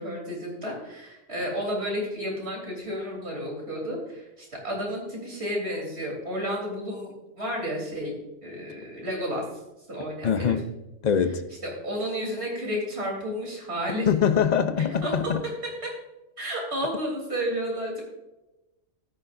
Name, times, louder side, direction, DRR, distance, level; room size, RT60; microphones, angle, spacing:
voice 1, 0.0-8.1 8.4-9.4 9.9-10.6 11.8-14.1 14.8-15.3 15.6-15.9 16.4-18.0, equal, 60° right, 3.8 m, -31 dB
voice 2, 10.2-10.6 11.0-11.4 14.1-15.4, left 7 dB, 45° left, 0.7 m, -23 dB
13.5 x 10.0 x 2.6 m
omnidirectional pair, 1.2 m